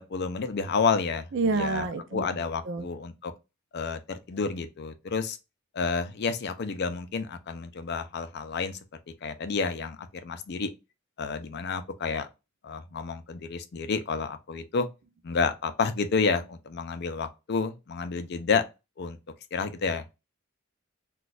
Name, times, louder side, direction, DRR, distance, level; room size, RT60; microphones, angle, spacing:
voice 1, 0.0-3.3 3.7-5.4 5.7-8.8 9.2-10.7 11.2-12.3 12.6-14.9 15.2-18.6 19.0-19.2 19.5-20.0, left 5 dB, 50° left, 0.4 m, -30 dB
voice 2, 1.3-2.9, right 3 dB, 60° right, 0.5 m, -29 dB
2.4 x 2.3 x 4.0 m
head